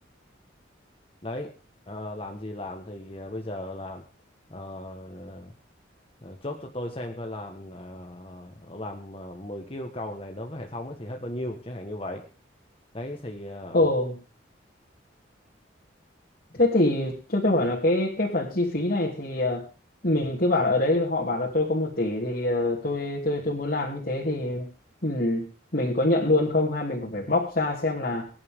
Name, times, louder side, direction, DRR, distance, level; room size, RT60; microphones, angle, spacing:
voice 1, 1.2-1.5 1.9-4.0 4.5-5.5 6.2-12.3 12.9-13.9, left 1 dB, 30° left, 3 dB, 1.4 m, -36 dB
voice 2, 13.7-14.2 16.5-19.6 20.0-24.7 25.0-25.4 25.7-28.3, left 2 dB, 50° left, -5 dB, 3.0 m, -25 dB
23.0 x 10.5 x 3.7 m, 0.33 s
head